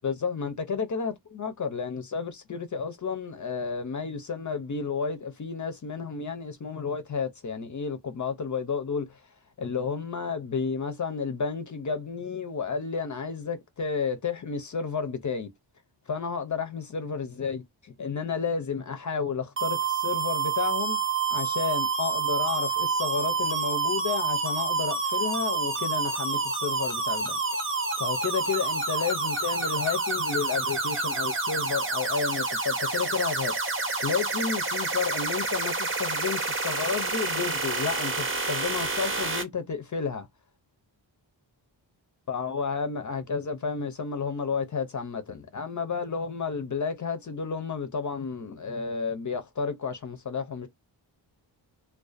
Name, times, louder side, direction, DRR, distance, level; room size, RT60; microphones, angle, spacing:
voice 1, 0.0-9.3 9.6-15.5 16.1-21.0 21.3-27.4 28.0-40.3 42.3-50.7, left 5 dB, 40° left, 0.4 m, -31 dB
sound 1, 19.6-39.4, right 4 dB, 25° right, 0.7 m, -28 dB
2.4 x 2.2 x 2.4 m
wide cardioid pair, 130°, 47 cm